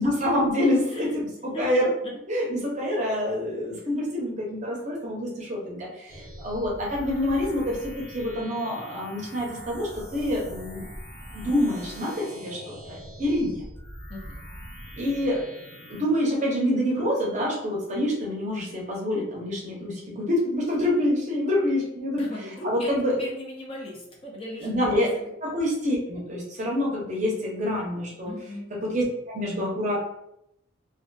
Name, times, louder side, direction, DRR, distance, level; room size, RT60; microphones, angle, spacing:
voice 1, 0.0-1.9 2.3-10.9 11.3-13.6 15.0-15.4 15.9-22.2 22.6-23.2 24.6-25.1 25.4-28.3 28.8-30.0, left 1 dB, 35° right, -3 dB, 0.6 m, -26 dB
voice 2, 0.9-1.2 1.5-1.7 2.0-2.1 14.1-14.5 22.2-24.7 24.9-25.2 28.2-28.7, left 2 dB, 25° left, -3 dB, 0.4 m, -38 dB
sound 1, 6.1-16.0, equal, 50° left, 1.0 m, -42 dB
2.5 x 2.4 x 2.2 m, 0.80 s
head